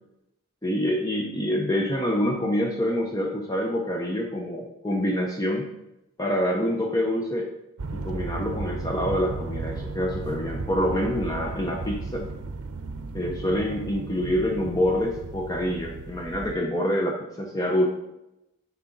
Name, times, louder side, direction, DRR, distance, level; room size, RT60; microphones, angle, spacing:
voice 1, 0.6-5.7 6.2-7.5 7.9-12.3 13.1-17.9, equal, 15° left, 0 dB, 0.6 m, -26 dB
sound 1, 7.8-16.6, right 3 dB, 85° right, 0.6 m, -35 dB
9.7 x 4.7 x 3.9 m, 0.88 s
head